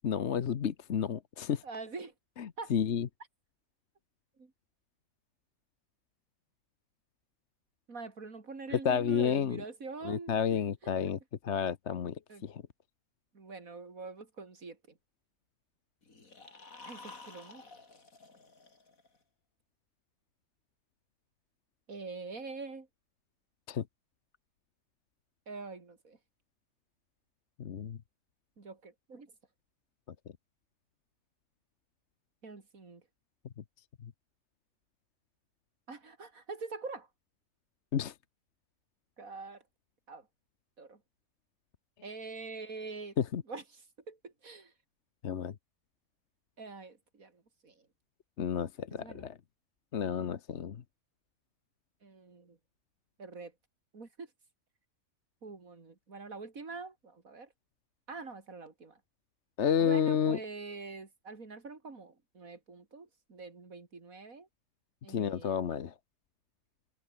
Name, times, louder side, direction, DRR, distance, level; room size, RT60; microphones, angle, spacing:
voice 1, 0.0-1.6 2.4-3.1 8.7-9.6 10.0-11.2 11.4-12.6 23.7-23.9 27.6-28.0 33.6-33.7 34.0-34.1 37.9-38.1 43.2-43.4 45.2-45.5 48.4-49.4 49.9-50.8 59.6-60.4 65.1-65.9, left 8 dB, 55° left, 1.2 m, -31 dB
voice 2, 1.6-2.1 2.6-2.7 4.4-4.5 7.9-10.4 10.8-11.1 12.3-12.4 13.3-15.0 16.8-17.6 21.9-22.9 25.5-26.2 28.6-29.3 32.4-33.0 35.9-37.1 39.2-39.6 40.1-40.3 40.8-41.0 42.0-43.2 43.5-43.8 44.1-44.7 46.6-47.9 48.9-49.3 52.0-52.6 53.2-53.5 53.9-54.3 55.4-57.5 58.1-59.0 59.8-64.5 65.0-65.7, right 4 dB, 75° right, 3.6 m, -45 dB
sound 1, 16.0-19.2, left 3 dB, 75° left, 3.8 m, -52 dB
omnidirectional pair, 1.5 m